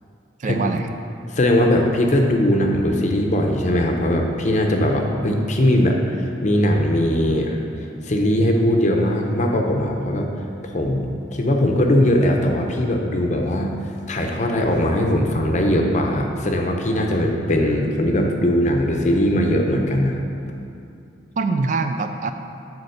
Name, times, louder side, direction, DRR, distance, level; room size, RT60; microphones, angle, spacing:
voice 1, 0.4-0.9 21.4-22.3, right 4 dB, 40° right, 7 dB, 0.3 m, -23 dB
voice 2, 1.3-7.6 8.0-10.3 10.6-13.7 14.1-20.3, left 1 dB, 40° left, 2 dB, 0.7 m, -20 dB
6.9 x 4.1 x 6.5 m, 2.5 s
head